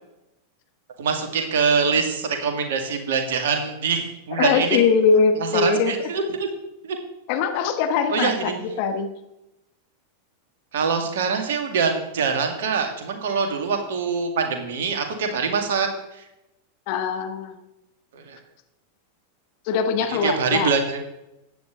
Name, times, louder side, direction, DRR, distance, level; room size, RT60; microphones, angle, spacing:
voice 1, 1.0-4.8 5.4-6.5 6.8-7.0 8.1-8.6 10.7-16.2 18.1-18.4 20.1-21.0, right 5 dB, 60° right, 5 dB, 2.0 m, -24 dB
voice 2, 4.3-6.1 7.3-8.5 8.8-9.1 16.9-17.6 19.7-20.7, left 5 dB, 45° left, 7 dB, 1.3 m, -21 dB
14.5 x 9.6 x 3.8 m, 0.91 s
figure-of-eight pair, 90°, 0 cm